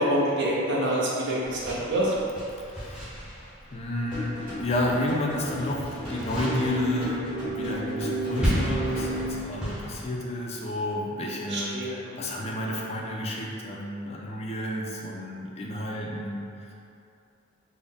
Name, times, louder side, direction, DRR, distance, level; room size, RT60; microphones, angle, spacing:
voice 1, 0.0-2.1 8.3-8.5 11.5-12.3, right 1 dB, 55° right, -6 dB, 0.7 m, -27 dB
sound 1, 1.4-5.0 5.3-10.1, equal, 5° right, 0.6 m, -34 dB
voice 2, 2.6-3.2 3.7-16.7, left 1 dB, 30° left, -2 dB, 0.3 m, -31 dB
sound 2, 4.0-9.1, left 1 dB, 25° right, 1.2 m, -36 dB
sound 3, 6.2-9.4, right 2 dB, 90° right, 0.9 m, -32 dB
3.8 x 2.0 x 3.5 m, 2.6 s
head